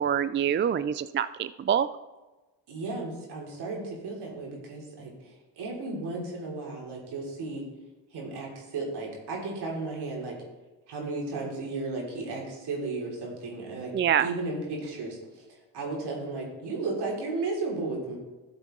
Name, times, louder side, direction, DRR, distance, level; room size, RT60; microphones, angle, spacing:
voice 1, 0.0-1.9 13.9-14.3, right 9 dB, 30° right, 14 dB, 0.4 m, -25 dB
voice 2, 2.7-7.6 8.1-10.4 10.9-13.9 14.2-15.4 15.7-18.2, right 3 dB, 75° right, -2 dB, 3.4 m, -34 dB
13.5 x 7.0 x 3.9 m, 1.1 s
supercardioid pair, 60°, 40 cm